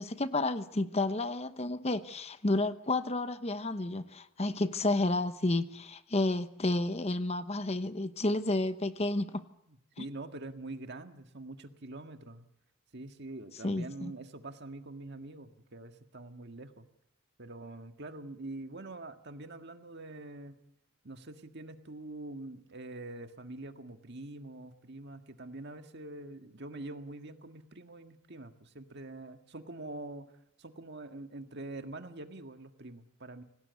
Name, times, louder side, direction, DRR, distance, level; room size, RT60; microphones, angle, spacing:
voice 1, 0.0-9.4 10.0-10.1 13.6-14.1, left 2 dB, 30° left, 11 dB, 1.0 m, -31 dB
voice 2, 9.7-12.5 12.9-16.9 17.4-20.6 21.0-30.3 30.6-33.4, right 2 dB, 50° right, 7 dB, 1.8 m, -45 dB
27.0 x 18.5 x 8.2 m, 0.80 s
head